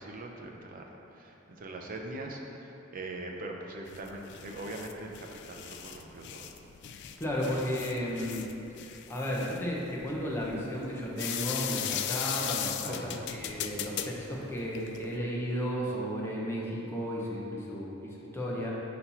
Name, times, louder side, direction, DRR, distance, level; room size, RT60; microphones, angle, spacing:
voice 1, 0.0-6.6 12.8-13.2, right 2 dB, 45° right, 1 dB, 0.6 m, -42 dB
sound 1, 3.9-15.2, left 10 dB, 55° left, 0.3 m, -38 dB
voice 2, 7.2-8.4 9.1-18.7, equal, 10° left, -5 dB, 0.9 m, -34 dB
4.4 x 4.1 x 5.6 m, 2.9 s
head